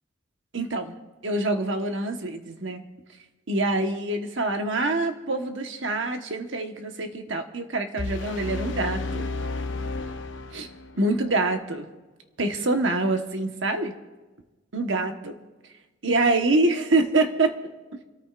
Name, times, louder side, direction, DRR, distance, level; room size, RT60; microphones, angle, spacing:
voice 1, 0.5-1.0 1.2-2.8 3.5-9.3 10.5-10.7 10.9-11.9 12.4-13.9 14.7-15.3 16.0-17.6, right 2 dB, 75° right, 5 dB, 1.3 m, -25 dB
sound 1, 8.0-11.0, left 3 dB, 70° left, 0.9 m, -32 dB
29.5 x 13.5 x 2.5 m, 1.2 s
head